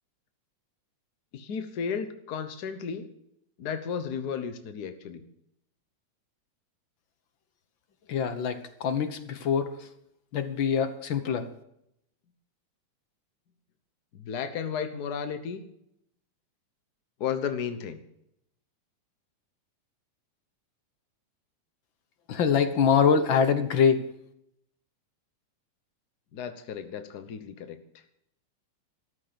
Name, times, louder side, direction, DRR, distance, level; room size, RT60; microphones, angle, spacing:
voice 1, 1.3-3.1 3.6-5.2 14.1-15.6 17.2-18.0 26.3-27.8, left 7 dB, 85° left, 9 dB, 0.8 m, -33 dB
voice 2, 8.1-9.7 10.3-11.4 22.3-24.0, left 6 dB, 60° left, 9 dB, 1.3 m, -24 dB
13.5 x 13.0 x 5.2 m, 0.76 s
omnidirectional pair, 3.4 m